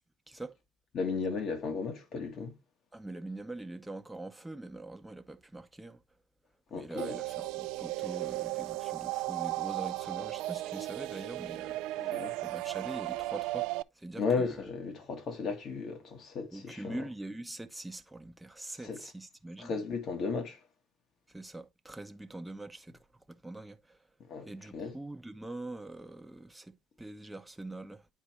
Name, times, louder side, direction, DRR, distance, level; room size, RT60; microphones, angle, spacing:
voice 1, 0.9-2.6 6.7-7.2 12.0-12.3 14.2-17.0 18.8-19.0 19.6-20.6 24.3-24.9, left 4 dB, 50° left, 1.8 m, -35 dB
voice 2, 2.9-6.0 6.7-13.7 13.9-14.7 16.5-19.8 21.3-24.0 24.3-28.1, right 2 dB, 5° right, 0.7 m, -44 dB
sound 1, 7.0-13.8, right 18 dB, 85° right, 0.3 m, -35 dB
9.6 x 4.5 x 3.0 m
cardioid pair, 125°, 0 cm